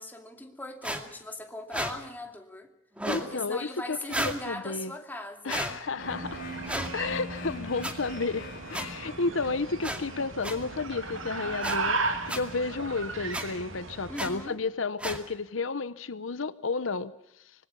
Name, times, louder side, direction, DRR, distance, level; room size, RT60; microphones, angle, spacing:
voice 1, 0.0-2.7 3.2-5.8 14.1-14.6, left 1 dB, 10° left, 3 dB, 2.6 m, -39 dB
sound 1, 0.8-1.0 1.7-1.9 3.0-3.3 4.1-4.4 5.5-5.7 6.7-6.9 7.8-7.9 8.7-8.9 9.8-10.0 10.4-10.6 11.6-11.8 12.3-12.4 13.3-13.4 14.2-14.3 15.0-15.2, right 1 dB, 5° right, 2.3 m, -32 dB
voice 2, 3.1-4.9 5.4-6.4 6.9-17.1, left 4 dB, 80° left, 14 dB, 0.9 m, -32 dB
sound 2, 5.9-14.5, right 3 dB, 90° right, 2.7 m, -36 dB
sound 3, 6.0-13.8, equal, 45° left, 5.7 m, -44 dB
25.5 x 21.0 x 7.0 m, 0.80 s
head